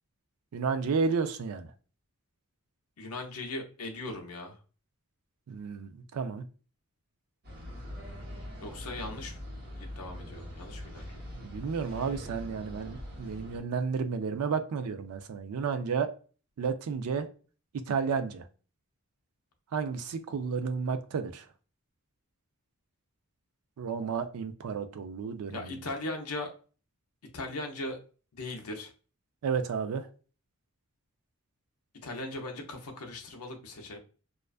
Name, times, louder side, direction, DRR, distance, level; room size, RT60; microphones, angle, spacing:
voice 1, 0.5-1.7 5.5-6.4 11.4-16.1 16.6-17.3 17.7-18.4 19.7-21.4 23.8-25.9 29.4-30.1, right 5 dB, 80° right, 0.4 m, -32 dB
voice 2, 3.0-4.6 8.6-9.4 9.8-11.2 25.5-26.5 27.3-28.0 28.3-28.9 31.9-34.0, left 2 dB, 75° left, 0.6 m, -39 dB
sound 1, 7.4-13.6, left 1 dB, 45° right, 1.0 m, -43 dB
2.4 x 2.2 x 2.3 m
head